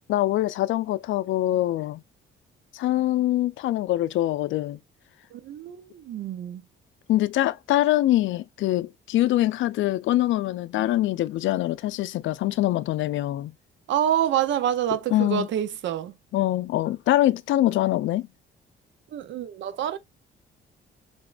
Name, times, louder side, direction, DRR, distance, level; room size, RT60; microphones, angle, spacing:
voice 1, 0.1-2.0 2.7-4.8 7.1-13.5 15.1-15.5 16.3-18.3, left 14 dB, 75° left, 0.4 m, -24 dB
voice 2, 5.3-6.6 13.9-16.1 19.1-20.0, right 10 dB, 70° right, 0.6 m, -27 dB
3.5 x 3.0 x 2.4 m
cardioid pair, 90°, 20 cm